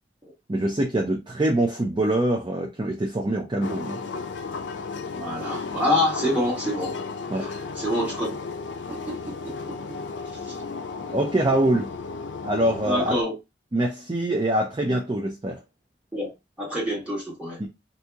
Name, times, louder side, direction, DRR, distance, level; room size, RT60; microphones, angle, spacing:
voice 1, 0.5-4.0 7.3-7.5 11.1-11.9 12.4-13.2 13.7-15.6 17.6-17.7, right 1 dB, 25° right, 0.5 m, -24 dB
sound 1, 3.6-13.2, left 4 dB, 85° left, 0.4 m, -34 dB
voice 2, 5.1-7.0 7.3-8.3 8.9-9.8 10.4-10.6 12.8-13.3 16.1-16.3 16.6-17.6, left 1 dB, 10° right, 1.5 m, -27 dB
2.8 x 2.7 x 3.5 m
head